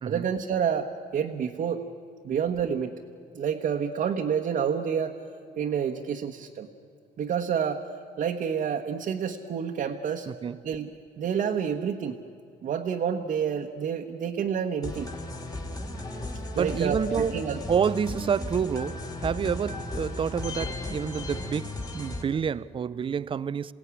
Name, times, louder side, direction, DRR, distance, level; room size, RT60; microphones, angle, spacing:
voice 1, 0.1-1.8 2.2-2.9 3.3-5.2 5.6-6.7 7.2-7.8 8.2-10.3 10.6-12.2 12.6-15.1 16.5-17.6, right 7 dB, 50° right, 1.2 m, -28 dB
voice 2, 10.3-10.6 16.6-17.4 17.7-23.7, right 7 dB, 30° right, 0.6 m, -28 dB
sound 1, 14.8-22.2, left 2 dB, 20° left, 2.9 m, -35 dB
28.0 x 17.0 x 9.7 m
cardioid pair, 110°, 17 cm